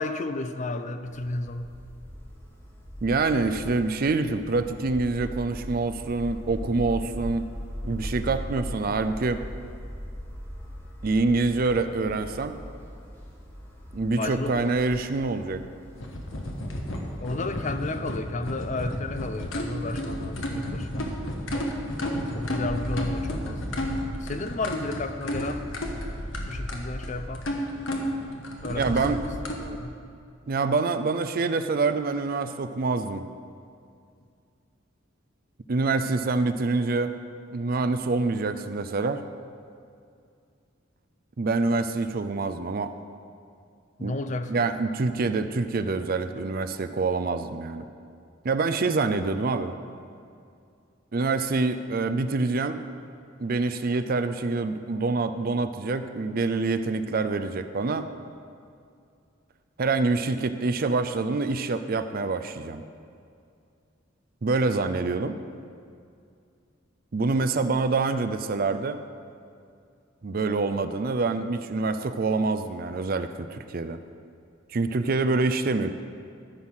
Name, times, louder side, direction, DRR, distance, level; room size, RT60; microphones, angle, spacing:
voice 1, 0.0-1.7 14.2-14.8 17.2-21.1 22.3-23.8 24.2-25.6 26.5-27.4 28.6-29.2 29.6-30.0 44.0-44.7, left 2 dB, 40° left, 9 dB, 0.5 m, -32 dB
sound 1, 1.0-17.2, equal, 10° left, 1.6 m, -40 dB
voice 2, 3.0-7.4 7.8-9.4 11.0-12.6 13.9-15.6 28.7-29.2 30.5-33.2 35.7-37.1 37.5-39.2 41.4-42.9 44.0-44.1 44.5-47.9 48.4-49.8 51.1-52.8 53.4-58.1 59.8-62.8 64.4-65.3 67.1-69.0 70.2-74.0 74.7-75.9, right 3 dB, 45° right, 9 dB, 0.5 m, -26 dB
sound 2, 16.0-29.6, left 1 dB, 80° left, 1.4 m, -32 dB
13.5 x 5.7 x 6.2 m, 2.4 s
head